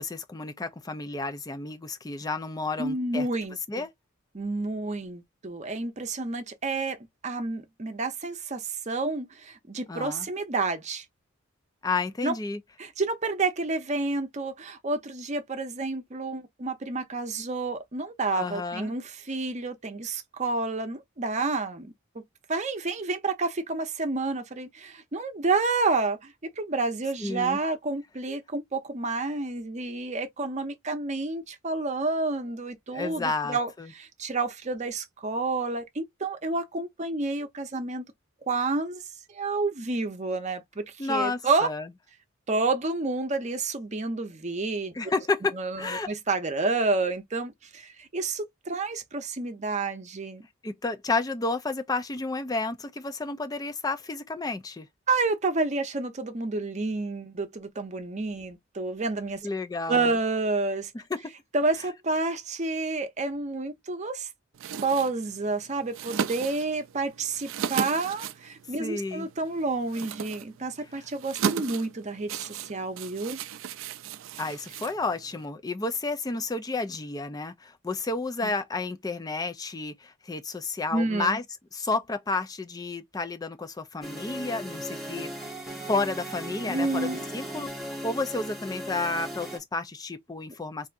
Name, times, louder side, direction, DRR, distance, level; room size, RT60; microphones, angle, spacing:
voice 1, 0.0-3.3 3.7-3.9 9.9-10.3 11.8-12.6 18.3-18.9 27.2-27.6 32.9-33.9 41.0-41.9 44.9-46.1 50.6-54.9 59.4-60.1 68.8-69.3 74.4-81.4 81.7-85.3 85.9-90.9, left 3 dB, 20° left, 0.4 m, -31 dB
voice 2, 2.8-3.8 4.3-7.0 7.2-11.0 12.2-12.3 12.8-21.9 22.5-38.1 38.5-39.0 39.3-41.7 42.5-44.9 45.5-50.4 55.1-59.4 59.9-60.9 61.5-64.3 64.8-73.4 78.4-78.5 80.9-81.4 86.6-87.2, right 3 dB, 35° right, 0.7 m, -29 dB
sound 1, 64.5-75.5, right 7 dB, 70° right, 0.3 m, -36 dB
sound 2, 84.0-89.6, right 1 dB, ahead, 1.1 m, -37 dB
3.4 x 2.7 x 2.5 m
head